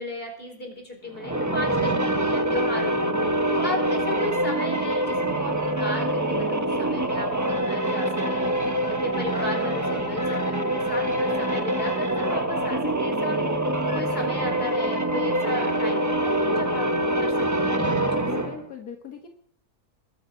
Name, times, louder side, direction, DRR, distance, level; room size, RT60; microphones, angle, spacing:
voice 1, 0.0-3.1 3.5-13.4 13.9-18.2, left 1 dB, 35° left, 1 dB, 4.6 m, -35 dB
sound 1, 1.1-18.6, right 1 dB, 15° right, 1.0 m, -25 dB
voice 2, 18.2-19.3, left 8 dB, 85° left, 3 dB, 2.0 m, -38 dB
21.0 x 8.1 x 5.1 m, 0.67 s
omnidirectional pair, 1.6 m